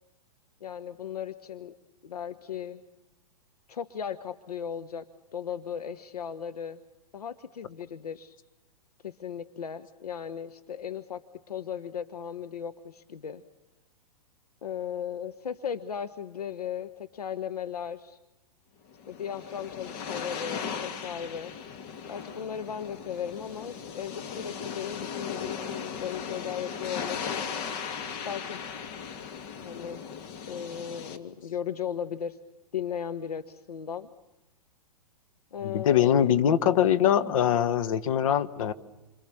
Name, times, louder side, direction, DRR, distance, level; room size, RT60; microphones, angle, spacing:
voice 1, 0.6-1.7 2.0-2.8 3.7-5.0 5.3-6.8 7.1-8.3 9.0-13.4 14.6-18.2 19.1-21.5 22.0-27.4 28.2-28.6 29.6-30.0 30.5-32.4 32.7-34.1 35.5-36.4, left 8 dB, 70° left, 10 dB, 1.1 m, -36 dB
sound 1, 18.9-31.2, left 6 dB, 40° left, 2.4 m, -37 dB
voice 2, 35.6-38.7, left 9 dB, 55° left, 10 dB, 1.4 m, -23 dB
28.5 x 26.5 x 7.1 m, 1.0 s
figure-of-eight pair, 110°, 20 cm